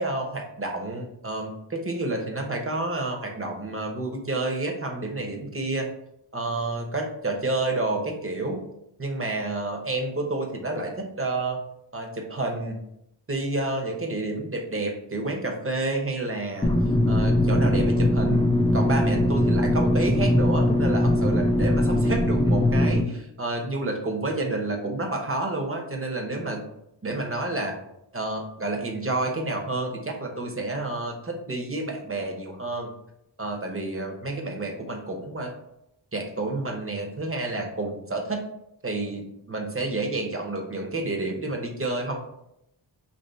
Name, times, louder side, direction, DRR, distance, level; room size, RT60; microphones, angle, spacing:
voice 1, 0.0-5.9 6.3-8.6 9.0-11.6 11.9-12.8 13.3-16.7 17.1-18.5 18.7-26.6 27.0-27.8 28.1-32.9 33.4-35.5 36.1-38.4 38.8-42.2, right 2 dB, 25° right, 2 dB, 0.9 m, -29 dB
sound 1, 16.6-23.0, left 1 dB, 10° left, 0.3 m, -21 dB
2.9 x 2.7 x 4.2 m, 0.79 s
cardioid pair, 40°, 49 cm